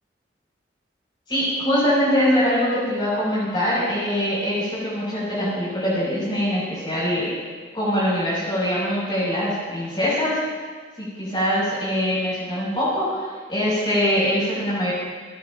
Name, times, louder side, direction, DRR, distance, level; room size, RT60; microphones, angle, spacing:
voice 1, 1.3-7.3 7.7-10.4 11.0-14.9, equal, 30° left, -7 dB, 5.8 m, -23 dB
30.0 x 15.0 x 2.6 m, 1.5 s
head